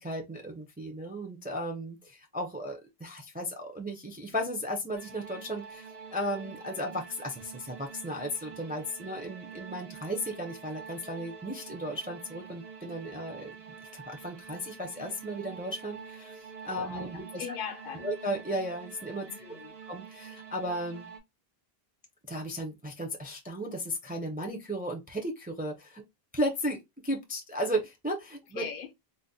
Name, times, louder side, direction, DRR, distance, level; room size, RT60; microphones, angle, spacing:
voice 1, 0.0-13.5 13.9-16.3 16.6-17.4 18.0-19.3 19.9-21.1 22.3-26.0 26.3-26.8 27.0-28.6, equal, 15° right, 0.4 m, -35 dB
sound 1, 4.9-21.2, right 6 dB, 80° right, 1.1 m, -47 dB
voice 2, 16.8-18.1 19.3-19.7 28.5-28.9, left 7 dB, 65° left, 0.7 m, -40 dB
3.8 x 2.0 x 2.6 m
omnidirectional pair, 1.0 m